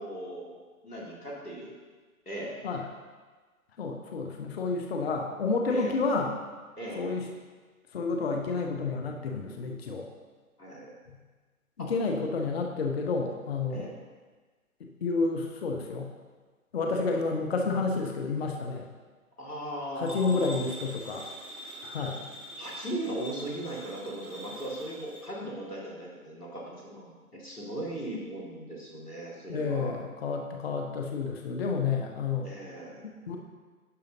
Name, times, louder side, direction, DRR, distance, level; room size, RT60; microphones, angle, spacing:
voice 1, 0.0-1.8 2.3-2.6 5.7-6.0 6.8-7.0 10.6-10.9 11.8-11.9 13.7-13.9 19.4-20.6 22.6-29.9 32.4-33.0, right 1 dB, 90° left, -4 dB, 2.1 m, -38 dB
voice 2, 3.8-6.3 7.0-7.3 7.9-10.1 11.8-13.9 14.8-16.1 16.7-18.9 20.0-21.2 21.8-22.2 29.5-32.5 33.0-33.4, left 4 dB, 45° left, 2 dB, 0.7 m, -30 dB
sound 1, 20.1-25.2, equal, 35° right, 1.5 m, -44 dB
11.0 x 5.0 x 2.7 m, 1.4 s
figure-of-eight pair, 135°, 44 cm